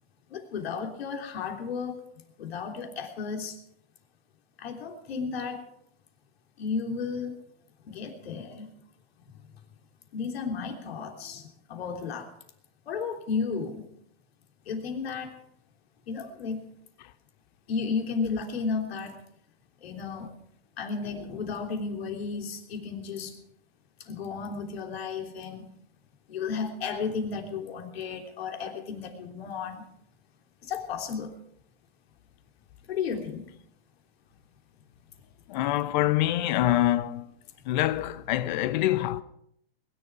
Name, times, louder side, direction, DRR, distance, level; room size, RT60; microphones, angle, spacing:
voice 1, 0.3-2.0 2.4-3.6 4.6-5.6 6.6-7.3 7.9-8.7 10.1-12.3 12.9-13.8 14.7-15.3 16.1-16.6 17.7-19.2 19.8-20.3 20.8-23.3 24.0-25.7 26.3-29.9 30.6-31.3 32.9-33.5, left 5 dB, 70° left, 3.3 m, -33 dB
voice 2, 35.5-37.3 37.7-39.2, left 14 dB, 45° left, 0.9 m, -25 dB
21.5 x 11.0 x 4.8 m
hypercardioid pair, 145°, 32 cm